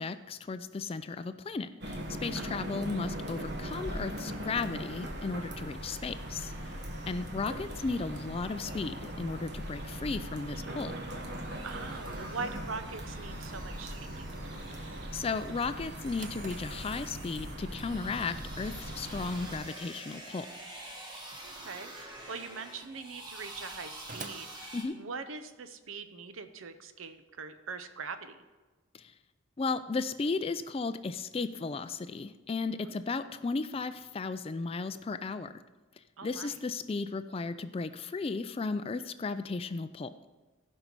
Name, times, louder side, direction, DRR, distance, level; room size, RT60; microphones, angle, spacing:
voice 1, 0.0-6.5 7.1-10.9 14.8-20.5 24.7-25.0 28.9-29.1 29.6-35.5 36.2-40.1, left 4 dB, 25° left, 12 dB, 0.3 m, -35 dB
sound 1, 1.8-19.6, right 1 dB, 55° right, 1.2 m, -40 dB
voice 2, 6.8-7.2 11.6-14.3 21.4-28.4 32.8-33.0 36.2-36.6, right 4 dB, 75° right, 10 dB, 0.7 m, -43 dB
sound 2, 11.5-24.8, right 1 dB, 20° right, 1.3 m, -48 dB
Drawer open or close, 16.1-25.5, right 4 dB, 40° right, 0.6 m, -53 dB
16.0 x 5.5 x 4.6 m, 1.3 s
head